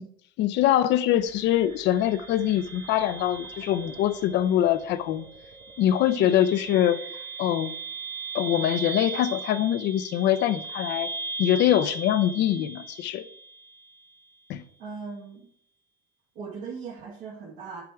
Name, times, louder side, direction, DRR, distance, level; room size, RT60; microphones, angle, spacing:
voice 1, 0.4-5.3 5.8-7.0 7.4-7.7 8.3-11.1 11.4-13.3 14.5-14.6, left 11 dB, 60° left, 0.6 m, -23 dB
sound 1, 1.1-14.1, right 4 dB, 45° right, 1.5 m, -38 dB
voice 2, 6.1-6.4 14.8-15.5 16.4-17.8, right 5 dB, 70° right, 2.0 m, -39 dB
9.5 x 3.4 x 4.7 m
hypercardioid pair, 75°, 21 cm